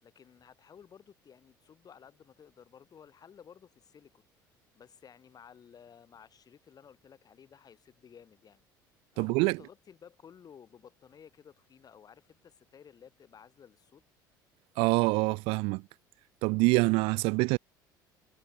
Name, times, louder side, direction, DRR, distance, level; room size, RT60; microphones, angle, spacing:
voice 1, 0.0-4.3 4.7-8.6 9.1-14.0, left 7 dB, 35° left, 2.9 m, -55 dB
voice 2, 9.2-9.6 14.8-15.8 16.4-17.6, right 27 dB, 60° right, 0.4 m, -25 dB
figure-of-eight pair, 60°, 11 cm